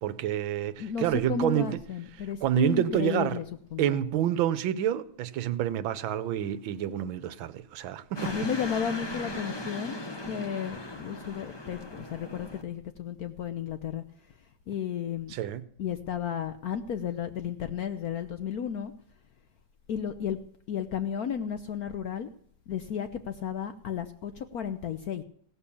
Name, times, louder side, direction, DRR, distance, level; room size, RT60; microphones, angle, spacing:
voice 1, 0.0-1.7 2.4-3.4 3.8-8.3 15.3-15.6, right 11 dB, 80° right, 1.5 m, -28 dB
voice 2, 0.8-4.1 8.2-10.0 10.3-14.0 14.7-15.3 15.8-18.9 19.9-20.4 20.7-22.3 22.7-25.2, left 8 dB, 65° left, 0.9 m, -33 dB
sound 1, 8.2-12.6, left 1 dB, 20° left, 0.8 m, -38 dB
16.5 x 6.9 x 7.0 m
omnidirectional pair, 2.2 m